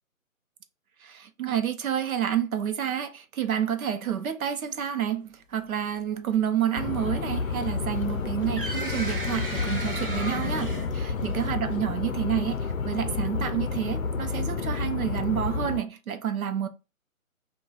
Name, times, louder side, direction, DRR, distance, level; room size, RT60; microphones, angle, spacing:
voice 1, 1.0-16.7, right 9 dB, 85° right, 0.7 m, -29 dB
sound 1, 6.8-15.8, left 4 dB, 70° left, 0.5 m, -30 dB
sound 2, 8.1-11.7, equal, 40° right, 0.6 m, -35 dB
2.3 x 2.3 x 3.8 m
hypercardioid pair, 180°, 41 cm